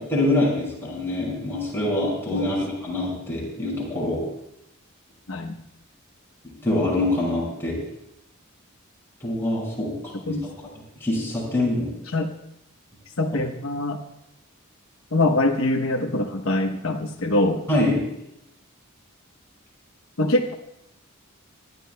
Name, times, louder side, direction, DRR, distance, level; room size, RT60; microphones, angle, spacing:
voice 1, 0.1-4.2 6.6-7.7 9.2-9.9 10.2-10.4 11.0-11.9 13.3-13.4 17.7-18.0, left 1 dB, 10° left, -5 dB, 6.0 m, -24 dB
voice 2, 13.2-14.0 15.1-17.6 20.2-20.5, left 2 dB, 80° left, 4 dB, 1.0 m, -23 dB
26.5 x 12.0 x 2.3 m, 0.83 s
head